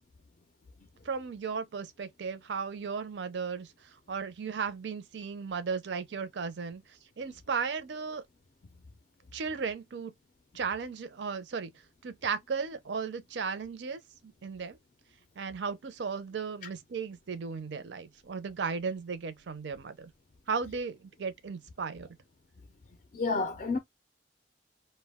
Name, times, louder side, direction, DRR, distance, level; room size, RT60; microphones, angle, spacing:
voice 1, 1.0-3.7 4.1-6.8 7.2-8.2 9.3-10.1 10.5-11.7 12.0-14.8 15.4-20.1 20.5-22.1, right 5 dB, 70° right, 0.5 m, -35 dB
voice 2, 23.1-23.8, left 3 dB, 40° left, 0.4 m, -30 dB
2.2 x 2.1 x 3.4 m
head